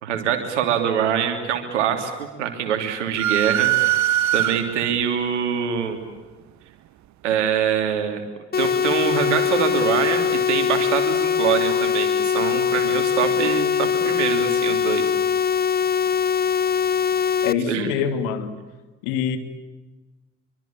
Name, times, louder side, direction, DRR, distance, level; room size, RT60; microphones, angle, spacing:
voice 1, 0.0-6.0 7.2-8.2 8.6-15.0 17.7-17.9, right 8 dB, 80° right, 6 dB, 3.3 m, -24 dB
sound 1, 3.2-5.0, right 13 dB, 55° right, 0.9 m, -21 dB
sound 2, 8.5-17.5, left 7 dB, 25° left, 0.9 m, -22 dB
voice 2, 17.4-18.6 19.0-19.4, left 8 dB, 70° left, 8 dB, 2.5 m, -24 dB
26.0 x 24.5 x 8.8 m, 1.2 s
figure-of-eight pair, 50°, 35 cm